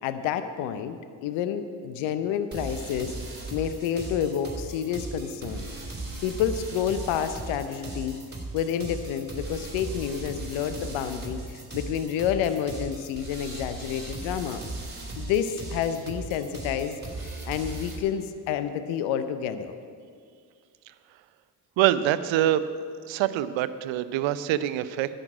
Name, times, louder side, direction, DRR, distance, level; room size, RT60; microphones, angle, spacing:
voice 1, 0.0-3.1 3.5-5.7 6.2-8.2 8.5-14.6 15.2-17.0 17.5-19.7, left 8 dB, 75° left, 11 dB, 0.8 m, -29 dB
sound 1, 2.5-18.0, right 2 dB, 20° right, 3.3 m, -38 dB
voice 2, 21.8-22.6 23.1-25.1, right 12 dB, 70° right, 14 dB, 0.7 m, -24 dB
10.5 x 6.5 x 9.0 m, 2.1 s
hypercardioid pair, 45°, 48 cm